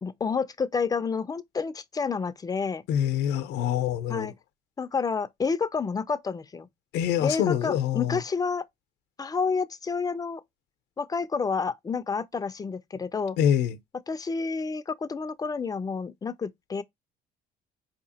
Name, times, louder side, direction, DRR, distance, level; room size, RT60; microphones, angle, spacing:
voice 1, 0.0-2.8 4.1-4.3 4.8-6.7 7.2-8.6 9.2-10.4 11.0-13.4 14.1-16.8, left 5 dB, 20° left, 0.4 m, -29 dB
voice 2, 2.9-4.3 6.9-8.2 13.4-13.8, left 10 dB, 80° left, 0.6 m, -25 dB
4.6 x 2.8 x 2.7 m
cardioid pair, 110°, 17 cm